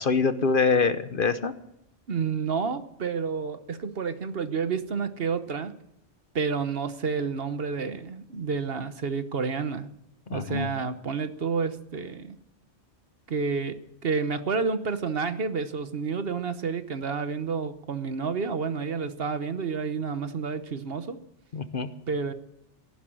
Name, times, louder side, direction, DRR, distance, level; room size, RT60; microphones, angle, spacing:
voice 1, 0.0-1.5 10.3-10.7 21.5-21.9, left 4 dB, 50° left, 11 dB, 1.0 m, -24 dB
voice 2, 2.1-5.7 6.3-9.9 10.3-12.4 13.3-13.8 14.0-21.2 22.1-22.3, right 5 dB, 55° right, 10 dB, 1.2 m, -30 dB
15.0 x 11.5 x 7.6 m, 0.80 s
omnidirectional pair, 1.2 m